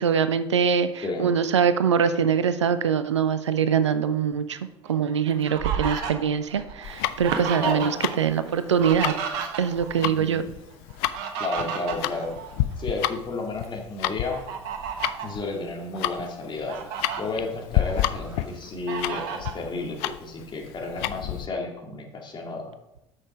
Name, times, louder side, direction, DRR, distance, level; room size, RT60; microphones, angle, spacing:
voice 1, 0.0-4.6 4.9-9.1 9.6-10.4, right 7 dB, 85° right, 12 dB, 0.5 m, -23 dB
Fowl, 4.8-8.2 8.4-10.0 10.9-13.0 13.5-13.7 14.3-15.4 16.0-16.1 16.4-17.2 17.7-18.4 18.9-19.6, right 7 dB, 65° right, 1.2 m, -32 dB
Tick-tock, 6.8-21.5, left 14 dB, 60° left, 0.5 m, -31 dB
voice 2, 7.6-7.9 10.0-10.4 11.4-12.3 12.8-14.4 15.2-16.7 17.2-22.7, left 3 dB, 30° left, 1 dB, 2.5 m, -32 dB
8.8 x 6.4 x 5.1 m, 0.89 s
figure-of-eight pair, 60°, 15 cm